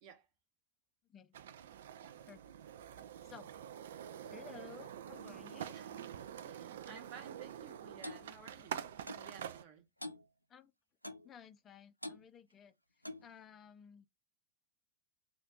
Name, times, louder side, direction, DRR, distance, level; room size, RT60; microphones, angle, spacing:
sound 1, 1.3-9.6, right 9 dB, 60° right, 0.3 m, -47 dB
voice 1, 2.9-3.5 4.2-5.8 10.5-10.7 11.2-14.1, left 8 dB, 25° left, 0.5 m, -56 dB
voice 2, 5.7-6.0 6.4-9.9, right 6 dB, 45° right, 1.0 m, -55 dB
Clock, 8.0-8.2 9.1-9.3 10.0-10.2 11.0-11.3 12.0-12.2 13.0-13.3, left 1 dB, 90° left, 0.3 m, -45 dB
2.5 x 2.2 x 3.5 m
figure-of-eight pair, 90°, 0 cm